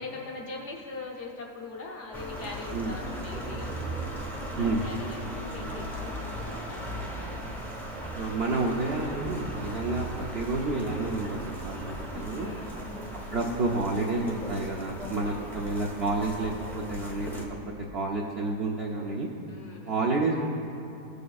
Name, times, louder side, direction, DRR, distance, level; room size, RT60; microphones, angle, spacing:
voice 1, 0.0-3.7 4.6-7.7 12.3-12.8 15.2-15.9 19.5-20.2, left 3 dB, 55° left, -1 dB, 0.9 m, -42 dB
sound 1, 2.1-17.5, right 1 dB, ahead, 0.6 m, -37 dB
voice 2, 8.1-12.5 13.3-17.4 17.9-19.3 19.9-20.4, right 3 dB, 60° right, -2 dB, 0.6 m, -29 dB
sound 2, 9.0-14.9, equal, 85° right, 1.9 m, -49 dB
15.5 x 6.7 x 2.3 m, 2.7 s
omnidirectional pair, 1.7 m